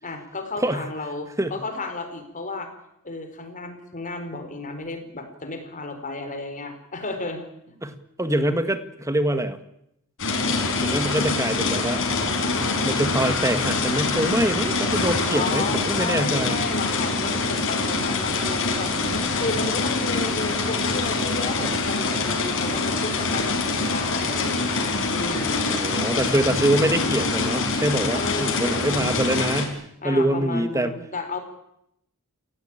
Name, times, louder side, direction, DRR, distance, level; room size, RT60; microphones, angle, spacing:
voice 1, 0.0-2.7 3.0-7.4 15.3-18.9 19.4-25.8 28.1-29.1 30.0-31.4, left 2 dB, 35° left, 7 dB, 4.5 m, -33 dB
voice 2, 7.8-9.6 10.8-12.0 12.8-16.6 25.7-29.8 30.0-30.9, right 1 dB, 15° right, 10 dB, 1.8 m, -24 dB
sound 1, 10.2-29.7, left 3 dB, 60° left, 5.4 m, -25 dB
28.5 x 16.5 x 9.0 m, 0.78 s
head